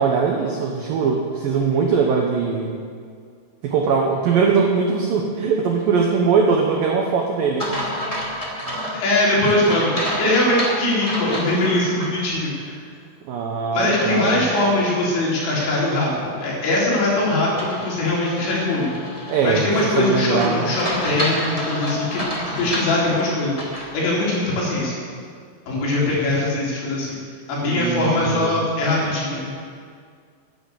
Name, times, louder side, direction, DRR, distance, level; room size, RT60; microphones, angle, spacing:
voice 1, 0.0-2.8 3.6-7.7 13.3-14.5 19.3-20.7 27.6-28.6, right 5 dB, 80° right, 1 dB, 2.0 m, -21 dB
sound 1, 7.6-12.1 12.5-12.6 17.6-23.9, equal, 45° left, 0.4 m, -30 dB
voice 2, 8.9-12.8 13.7-18.9 19.4-24.9 25.7-27.2 27.5-29.5, left 1 dB, 70° left, -5 dB, 6.0 m, -21 dB
11.5 x 10.5 x 8.3 m, 2.1 s
omnidirectional pair, 5.5 m